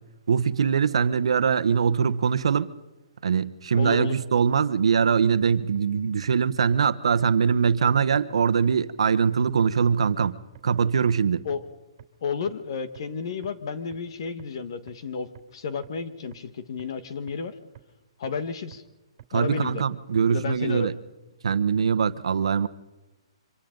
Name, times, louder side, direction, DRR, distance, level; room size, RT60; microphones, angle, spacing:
voice 1, 0.3-2.7 3.2-10.4 10.6-11.4 19.3-20.9 21.4-22.7, right 6 dB, 75° right, 11 dB, 1.0 m, -22 dB
voice 2, 3.7-4.2 11.4-11.6 12.2-17.6 18.2-18.8 19.3-19.8 20.3-20.9, left 5 dB, 55° left, 12 dB, 1.6 m, -32 dB
sound 1, 5.8-5.9 6.2-6.3 6.7-6.8 7.2-7.3 7.7-7.8 8.2-8.3 8.6-8.7 9.1-9.2 9.6-9.7 10.1-10.2 10.6-10.7 11.0-11.1 11.5-11.6 12.0-12.1 12.5-12.6 13.0-13.1 13.4-13.5 13.9-14.0 14.4-14.5 14.9-15.0 15.4-15.5 15.8-15.9 16.3-16.4 16.8-16.9 17.3-17.4 17.8-17.9 18.2-18.3 18.7-18.8 19.2-19.3 19.7-19.8 20.2-20.3 20.6-20.7, right 12 dB, 40° right, 3.1 m, -46 dB
27.0 x 25.5 x 3.9 m, 1.1 s
hypercardioid pair, 165°, 3 cm